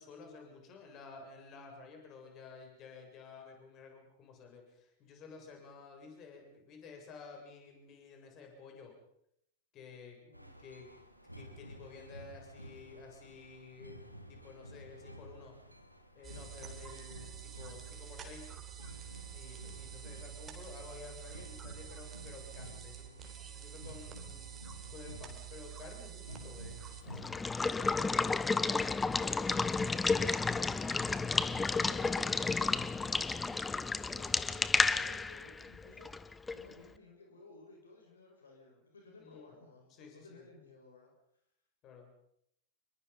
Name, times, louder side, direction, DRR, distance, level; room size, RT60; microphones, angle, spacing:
voice 1, 0.0-8.9 9.7-10.2 10.6-10.9 11.3-15.6 16.1-18.5 19.3-23.1 23.4-24.6 24.9-27.4 39.2-39.5 39.9-40.4 41.8-42.1, left 4 dB, 35° left, 2 dB, 7.6 m, -52 dB
sound 1, 10.3-27.4, equal, 90° left, 2.7 m, -52 dB
sound 2, 16.2-27.0, right 10 dB, 20° right, 4.1 m, -48 dB
Water / Water tap faucet / Liquid, 27.1-36.7, left 4 dB, 10° left, 0.9 m, -32 dB
voice 2, 31.3-36.2 36.5-41.1, left 3 dB, 70° left, 1 dB, 6.0 m, -57 dB
28.5 x 22.5 x 5.5 m, 0.74 s
figure-of-eight pair, 90°, 0 cm